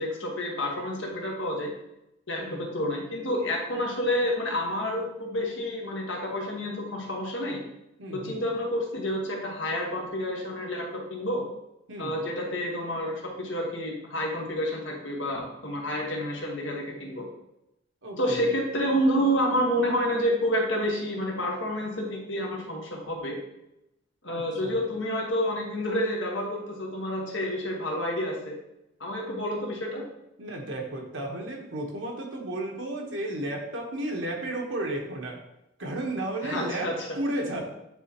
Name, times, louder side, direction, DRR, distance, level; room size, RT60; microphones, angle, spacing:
voice 1, 0.0-1.7 2.3-7.6 8.1-11.4 12.0-17.2 18.2-23.4 24.2-28.6 29.0-30.0 36.4-37.2, equal, 70° left, 0 dB, 1.4 m, -29 dB
voice 2, 8.0-8.4 11.9-12.2 18.0-18.5 24.3-24.8 30.4-35.4 35.8-37.6, right 1 dB, 70° right, 1 dB, 1.2 m, -33 dB
9.1 x 3.7 x 3.0 m, 0.87 s
head